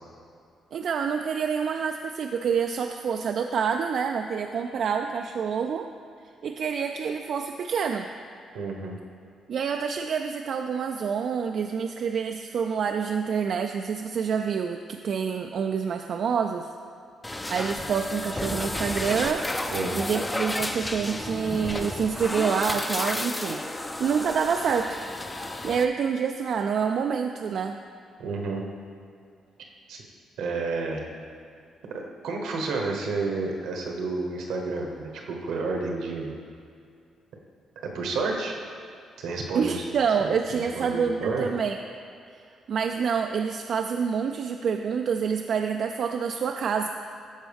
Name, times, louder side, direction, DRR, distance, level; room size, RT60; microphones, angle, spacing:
voice 1, 0.7-5.9 6.4-8.1 9.5-16.7 17.5-19.4 19.9-23.6 24.0-25.0 25.6-27.8 39.5-41.8 42.7-46.9, right 6 dB, 60° right, 5 dB, 0.3 m, -27 dB
voice 2, 8.5-9.0 19.7-20.0 28.2-28.6 29.9-30.0 30.4-31.0 31.9-36.4 37.8-38.5 39.2-39.8 40.2-41.5, right 3 dB, 85° right, 1 dB, 1.1 m, -30 dB
sound 1, 17.2-25.8, left 1 dB, 15° left, 0.4 m, -32 dB
13.5 x 4.5 x 3.5 m, 2.4 s
cardioid pair, 90°, 0 cm